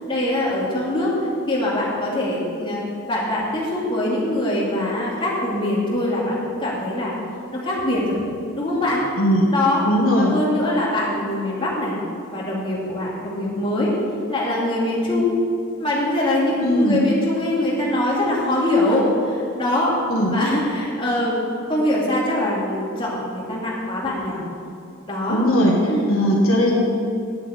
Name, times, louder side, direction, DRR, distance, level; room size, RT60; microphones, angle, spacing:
voice 1, 0.1-1.1 1.5-2.8 3.1-7.1 7.5-8.2 8.5-9.0 9.5-9.9 10.1-12.0 12.3-13.9 14.3-15.3 15.8-20.0 20.3-21.4 21.7-24.4 25.1-25.4 25.9-26.2, left 1 dB, 25° left, -6 dB, 2.5 m, -23 dB
voice 2, 9.2-9.5 9.8-10.3 16.6-17.0 20.1-20.3 25.3-25.7 26.1-26.7, equal, 75° left, -2 dB, 1.7 m, -18 dB
9.7 x 7.6 x 8.1 m, 2.5 s
head